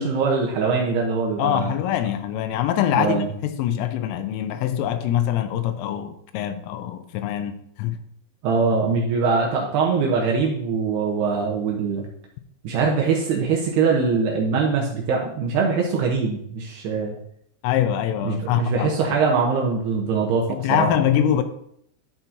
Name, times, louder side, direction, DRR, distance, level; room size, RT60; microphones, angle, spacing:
voice 1, 0.0-1.7 2.9-3.3 8.4-12.1 12.6-17.2 18.2-20.9, right 5 dB, 80° right, 2.4 m, -22 dB
voice 2, 1.4-8.0 17.6-19.2 20.5-21.4, left 10 dB, 85° left, 3.1 m, -24 dB
12.5 x 5.9 x 2.7 m
omnidirectional pair, 5.9 m